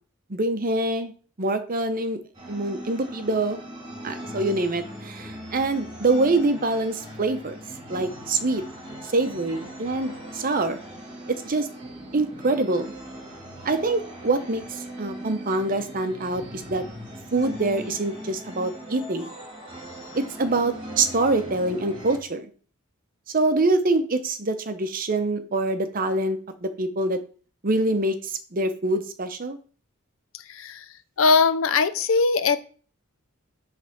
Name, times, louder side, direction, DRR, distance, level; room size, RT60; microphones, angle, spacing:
voice 1, 0.3-1.1 1.4-2.2 2.5-3.6 4.0-7.6 7.9-8.6 9.1-10.8 11.3-11.7 12.1-12.9 13.6-16.8 17.3-19.3 20.1-22.5 23.3-27.2 27.6-29.6, right 2 dB, 40° right, 9 dB, 0.7 m, -25 dB
sound 1, 2.3-22.2, equal, 25° right, 2.4 m, -40 dB
voice 2, 30.3-30.9 31.2-32.6, left 4 dB, 65° left, 14 dB, 0.6 m, -21 dB
7.9 x 3.4 x 5.7 m, 0.41 s
head